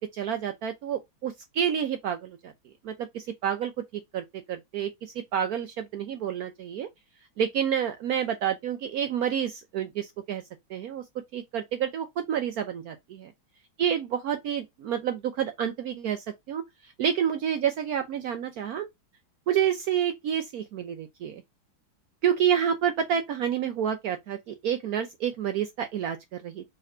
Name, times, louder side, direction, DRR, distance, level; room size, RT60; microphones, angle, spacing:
voice 1, 0.0-2.5 2.8-6.9 7.4-10.4 10.7-11.0 11.3-13.3 13.8-18.9 19.5-21.4 22.2-26.6, right 9 dB, 80° right, 0.8 m, -29 dB
3.8 x 3.2 x 4.2 m
omnidirectional pair, 2.2 m